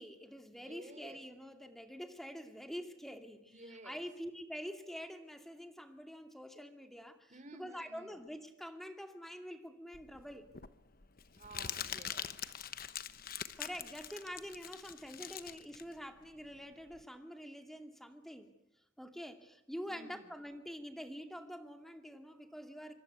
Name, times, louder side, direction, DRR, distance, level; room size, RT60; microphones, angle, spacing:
voice 1, 0.0-10.5 13.6-18.5 19.0-22.9, equal, ahead, 5 dB, 2.4 m, -46 dB
voice 2, 0.5-1.2 3.4-4.0 7.3-8.2 11.3-12.4 19.9-20.3, right 2 dB, 40° right, 9 dB, 3.6 m, -54 dB
Crumpling crinkling, 9.9-17.0, left 9 dB, 50° left, 1.1 m, -44 dB
26.0 x 24.0 x 8.2 m, 0.86 s
head